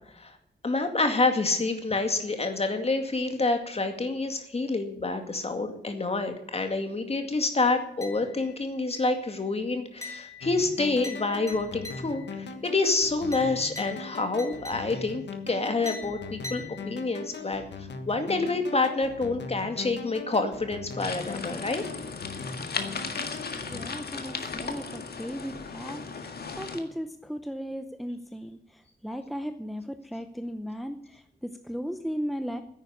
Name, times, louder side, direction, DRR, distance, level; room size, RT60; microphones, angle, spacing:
voice 1, 0.6-17.6 18.1-21.8, left 3 dB, 35° left, 6 dB, 2.1 m, -28 dB
sound 1, 8.0-8.6 8.9-9.4 10.0-12.4 13.3-15.2 15.9-17.3, left 3 dB, 20° left, 3.2 m, -44 dB
sound 2, 10.4-23.9, left 4 dB, 80° left, 1.5 m, -40 dB
sound 3, 21.0-26.8, left 4 dB, 65° left, 1.8 m, -36 dB
voice 2, 23.7-26.3 26.5-32.6, equal, ahead, 7 dB, 0.7 m, -36 dB
10.5 x 9.0 x 9.6 m, 0.81 s
wide cardioid pair, 140°, 18 cm